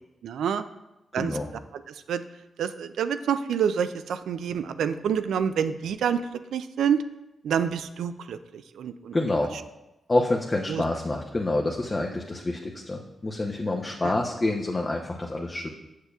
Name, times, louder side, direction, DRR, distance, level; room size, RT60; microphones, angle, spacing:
voice 1, 0.2-0.6 1.1-1.4 1.9-2.2 2.6-6.2 6.5-7.0 7.4-9.2 10.7-10.8 14.0-14.2, right 8 dB, 80° right, 11 dB, 0.3 m, -27 dB
voice 2, 1.2-1.5 9.1-9.5 10.1-15.7, left 2 dB, 35° left, 0 dB, 0.7 m, -27 dB
6.5 x 6.5 x 2.4 m, 0.95 s
supercardioid pair, 45°, 0 cm